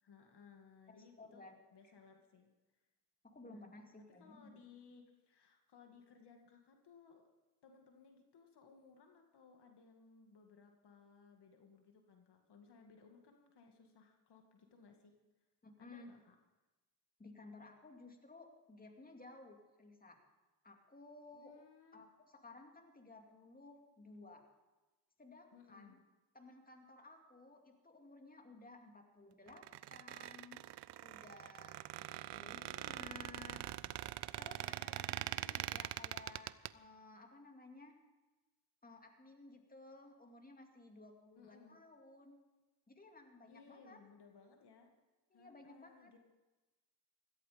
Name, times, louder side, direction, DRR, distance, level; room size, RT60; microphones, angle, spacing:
voice 1, 0.0-1.4 1.7-2.5 3.5-7.3 7.6-15.1 15.8-16.3 21.3-22.1 25.5-26.0 32.3-34.1 35.3-35.9 41.4-41.8 43.5-44.9 45.3-46.2, left 5 dB, 65° left, 3 dB, 2.1 m, -62 dB
voice 2, 0.9-1.6 1.8-1.9 3.2-4.6 15.6-16.1 17.2-20.2 20.6-21.5 21.9-24.4 25.2-26.0 26.3-30.6 31.0-33.6 34.4-38.0 38.8-42.4 42.9-44.0 45.3-46.2, left 3 dB, 20° left, 3 dB, 2.5 m, -57 dB
Squeak, 29.5-36.7, right 14 dB, 65° right, 0.6 m, -43 dB
16.5 x 14.5 x 5.1 m, 1.1 s
cardioid pair, 75°, 43 cm